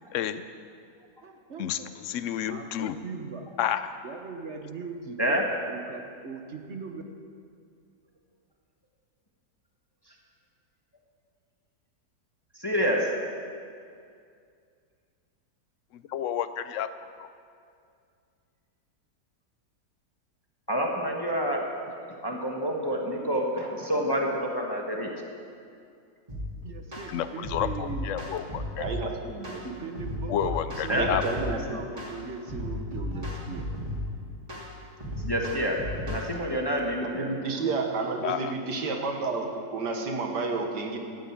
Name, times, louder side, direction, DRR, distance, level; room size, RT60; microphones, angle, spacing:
voice 1, 0.1-0.4 1.6-3.0 3.6-3.9 15.9-16.9 17.2-17.3 27.1-28.9 30.3-31.2 36.1-36.2 38.2-38.5, left 10 dB, 75° left, 12 dB, 0.7 m, -30 dB
voice 2, 1.2-1.9 2.5-3.5 4.0-5.4 5.7-7.0 26.6-28.1 29.6-33.7, right 4 dB, 45° right, 4 dB, 1.1 m, -40 dB
voice 3, 12.5-13.2 20.7-21.9 22.2-25.1 30.9-31.1 35.2-37.3, equal, 15° left, 0 dB, 1.2 m, -28 dB
sound 1, 26.3-26.5 26.9-27.1 27.4-29.0 29.4-29.6 30.0-31.6 32.0-32.2 32.5-34.1 34.5-34.7 35.0-36.3, left 1 dB, 20° right, 2.7 m, -34 dB
voice 4, 28.8-29.6 30.9-31.8 37.0-41.0, right 3 dB, 75° right, 3 dB, 2.0 m, -31 dB
12.5 x 9.1 x 8.8 m, 2.3 s
omnidirectional pair, 1.9 m